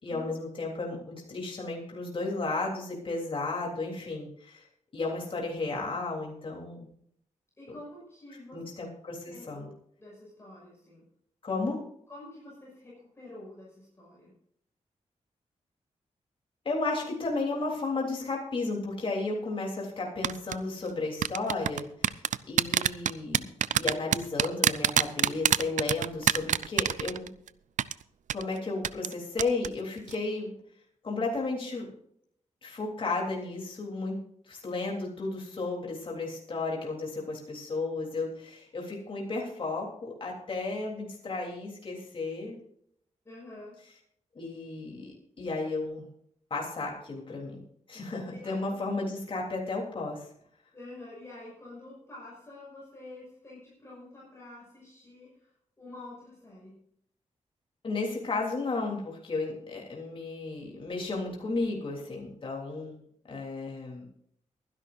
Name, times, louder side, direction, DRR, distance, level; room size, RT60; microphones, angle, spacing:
voice 1, 0.0-4.7 4.9-6.9 8.5-9.7 11.4-11.8 16.6-22.2 22.5-23.5 23.7-27.3 28.3-30.5 31.0-31.9 32.6-34.2 34.5-42.6 44.3-46.1 46.5-47.6 47.9-50.3 57.8-63.0 63.3-64.0, left 3 dB, 45° left, -1 dB, 3.4 m, -33 dB
voice 2, 7.6-8.6 9.3-9.7 10.0-11.1 12.1-14.3 43.2-43.8 48.3-48.7 50.7-56.8, left 2 dB, 20° left, -6 dB, 6.1 m, -48 dB
sound 1, 20.2-20.6 21.2-27.5 27.8-27.9 28.3-28.4 28.8-29.1 29.4-29.7 30.0-30.2, right 9 dB, 80° right, 0.5 m, -24 dB
23.0 x 11.0 x 2.6 m, 0.69 s
wide cardioid pair, 145°, 13 cm